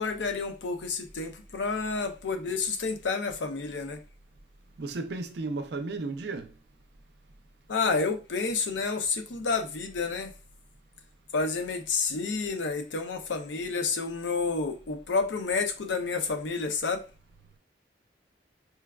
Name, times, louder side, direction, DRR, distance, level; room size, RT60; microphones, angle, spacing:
voice 1, 0.0-4.0 7.7-10.3 11.3-17.0, left 4 dB, 90° left, 0.5 m, -30 dB
voice 2, 4.8-6.5, right 3 dB, 65° right, 0.5 m, -34 dB
4.5 x 2.3 x 2.2 m
head